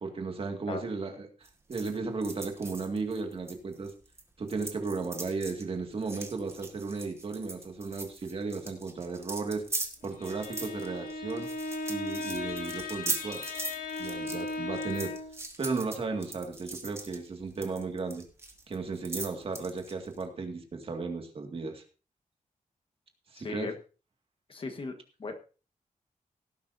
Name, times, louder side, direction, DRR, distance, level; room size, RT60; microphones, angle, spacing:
voice 1, 0.0-1.3 1.7-3.9 4.4-9.6 10.0-11.5 11.9-13.4 14.0-15.1 15.6-18.2 18.7-21.8 23.3-23.7, right 4 dB, 45° right, 4 dB, 2.0 m, -35 dB
sound 1, 1.4-4.2 4.5-20.2, right 2 dB, 20° right, 1.7 m, -40 dB
Bowed string instrument, 10.0-15.4, left 2 dB, 85° left, 2.3 m, -37 dB
voice 2, 23.3-23.8 24.5-25.3, left 3 dB, 40° left, 7 dB, 1.4 m, -37 dB
17.5 x 10.5 x 2.7 m, 0.35 s
wide cardioid pair, 180°, 14 cm